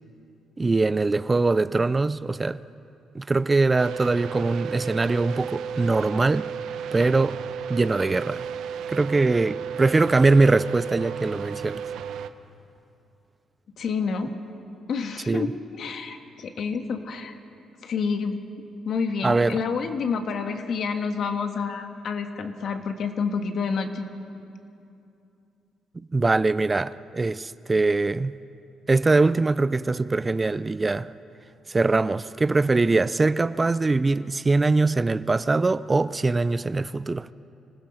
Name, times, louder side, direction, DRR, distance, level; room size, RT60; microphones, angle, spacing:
voice 1, 0.6-2.6 3.1-6.5 6.9-7.4 7.7-8.4 8.9-11.8 15.3-15.5 19.2-19.6 26.1-28.4 28.9-31.1 31.7-37.3, right 3 dB, 25° right, 0.4 m, -22 dB
sound 1, 3.8-12.3, right 7 dB, 80° right, 0.7 m, -34 dB
voice 2, 13.8-14.3 14.9-17.4 17.8-18.4 18.8-24.0, left 5 dB, 65° left, 1.6 m, -28 dB
25.5 x 16.0 x 6.5 m
cardioid pair, 90°, 0 cm